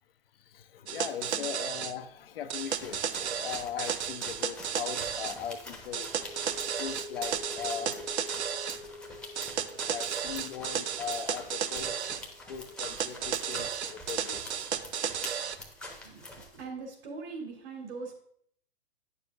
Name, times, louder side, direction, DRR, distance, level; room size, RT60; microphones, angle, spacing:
voice 1, 0.4-6.1 6.6-8.3 8.7-8.8 9.3-9.4 9.7-14.6 15.0-15.1, left 8 dB, 60° left, 0.7 m, -40 dB
sound 1, 0.9-1.9 2.5-5.4 5.9-8.8 9.4-12.2 12.8-15.6, right 8 dB, 85° right, 0.5 m, -33 dB
sound 2, 2.6-16.6, left 1 dB, 5° left, 0.9 m, -46 dB
sound 3, 6.0-13.3, left 3 dB, 25° left, 0.6 m, -47 dB
voice 2, 16.0-18.1, right 4 dB, 60° right, 2.6 m, -41 dB
9.4 x 6.8 x 2.4 m
hypercardioid pair, 115°, 32 cm